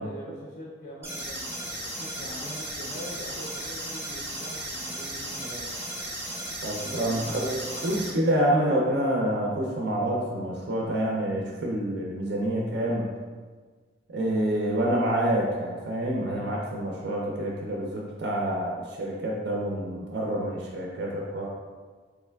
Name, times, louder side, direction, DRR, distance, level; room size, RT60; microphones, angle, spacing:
voice 1, 0.0-5.7 6.8-8.4, equal, 50° left, -5 dB, 0.5 m, -42 dB
sound 1, 1.0-8.1, right 1 dB, 15° right, 0.6 m, -35 dB
voice 2, 6.6-13.0 14.1-21.5, right 1 dB, 55° right, -2 dB, 0.4 m, -27 dB
3.6 x 3.2 x 2.2 m, 1.5 s
head